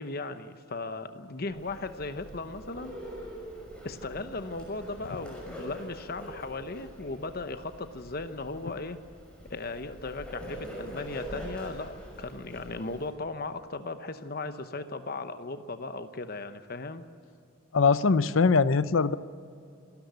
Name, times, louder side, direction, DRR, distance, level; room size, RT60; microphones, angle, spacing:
voice 1, 0.0-3.0 3.8-9.0 9.5-17.0, left 3 dB, 45° left, 10 dB, 0.9 m, -37 dB
Bird, 1.5-13.1, equal, 5° left, 5.9 m, -44 dB
voice 2, 17.7-19.2, left 4 dB, 70° left, 15 dB, 0.6 m, -22 dB
26.5 x 13.0 x 8.1 m, 2.5 s
head